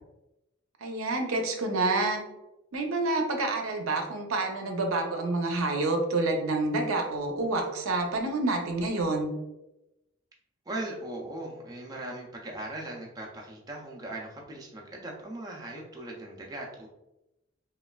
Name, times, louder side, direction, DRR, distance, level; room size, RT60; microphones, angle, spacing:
voice 1, 0.8-2.2 2.7-9.3, right 2 dB, 85° right, 3 dB, 0.5 m, -28 dB
voice 2, 10.7-16.9, right 1 dB, 20° right, -2 dB, 0.4 m, -39 dB
3.1 x 2.3 x 2.2 m, 0.92 s
head